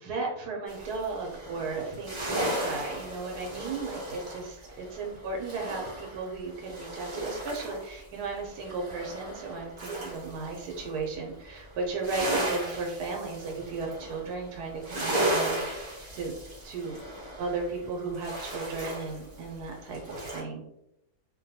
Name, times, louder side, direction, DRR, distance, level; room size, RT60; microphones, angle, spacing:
voice 1, 0.0-16.4 16.6-17.0 17.4-20.6, right 3 dB, 85° right, 0 dB, 1.1 m, -35 dB
sound 1, 0.7-7.9 8.2-11.0 11.4-20.4, right 1 dB, 35° right, 0.4 m, -35 dB
2.8 x 2.2 x 2.6 m, 0.80 s
omnidirectional pair, 1.6 m